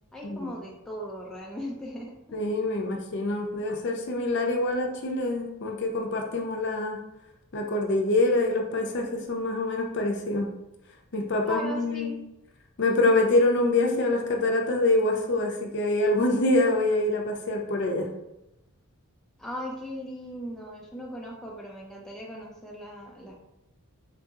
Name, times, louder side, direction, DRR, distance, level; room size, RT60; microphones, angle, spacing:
voice 1, 0.1-2.5 11.4-12.2 19.4-23.3, equal, ahead, -3 dB, 0.3 m, -38 dB
voice 2, 2.3-7.0 7.5-10.5 11.1-12.2 12.8-18.1, left 2 dB, 55° left, 1 dB, 0.5 m, -25 dB
3.8 x 2.7 x 2.4 m, 0.89 s
head